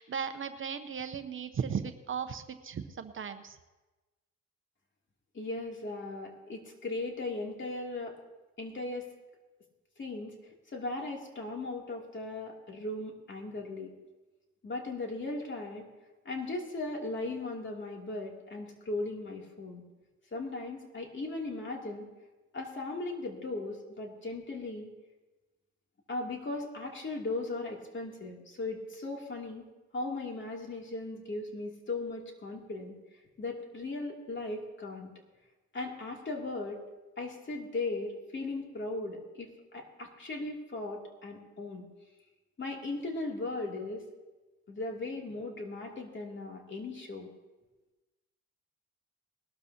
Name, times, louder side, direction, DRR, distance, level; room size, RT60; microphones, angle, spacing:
voice 1, 0.0-3.6, right 7 dB, 45° right, 9 dB, 0.8 m, -36 dB
voice 2, 5.3-8.2 8.6-9.1 10.0-10.3 10.7-13.9 14.6-15.9 16.2-19.8 20.3-22.1 22.5-24.9 26.1-29.7 29.9-32.9 33.4-35.1 35.7-36.8 37.2-41.8 42.6-44.1 44.7-47.3, left 2 dB, 40° left, 0 dB, 2.8 m, -37 dB
20.0 x 12.5 x 2.9 m, 1.2 s
cardioid pair, 90°, 30 cm